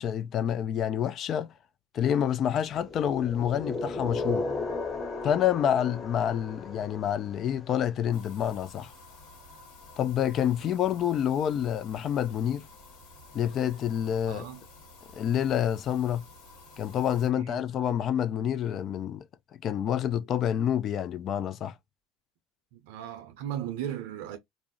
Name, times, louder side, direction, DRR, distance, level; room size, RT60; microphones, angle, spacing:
voice 1, 0.0-1.5 1.9-4.5 5.2-8.9 10.0-12.7 13.3-14.5 15.1-16.2 16.8-21.8, left 9 dB, 50° left, 0.4 m, -28 dB
sound 1, 2.7-7.7, left 2 dB, 30° left, 0.7 m, -35 dB
sound 2, 8.1-17.3, left 2 dB, 70° left, 1.2 m, -51 dB
voice 2, 14.3-14.6 17.4-17.6 22.7-24.4, right 10 dB, 80° right, 0.5 m, -36 dB
2.4 x 2.0 x 3.6 m
supercardioid pair, 85°, 0 cm